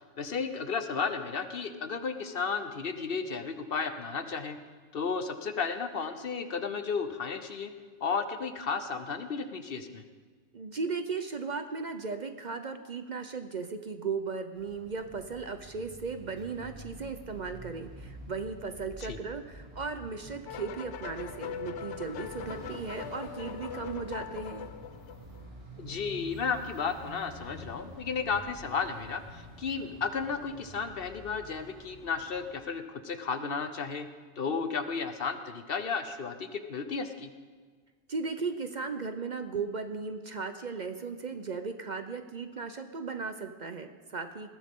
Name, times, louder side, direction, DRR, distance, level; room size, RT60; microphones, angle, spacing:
voice 1, 0.2-4.6 4.9-7.7 8.0-10.0 19.1-19.2 25.8-34.1 34.4-37.3, left 5 dB, 55° left, 9 dB, 1.1 m, -33 dB
voice 2, 10.5-24.7 38.1-44.5, right 4 dB, 45° right, 8 dB, 0.8 m, -36 dB
sound 1, 14.6-32.5, right 1 dB, 30° right, 2.4 m, -48 dB
sound 2, 20.5-25.5, left 9 dB, 80° left, 0.9 m, -41 dB
20.0 x 14.5 x 3.7 m, 1.5 s
omnidirectional pair, 1.2 m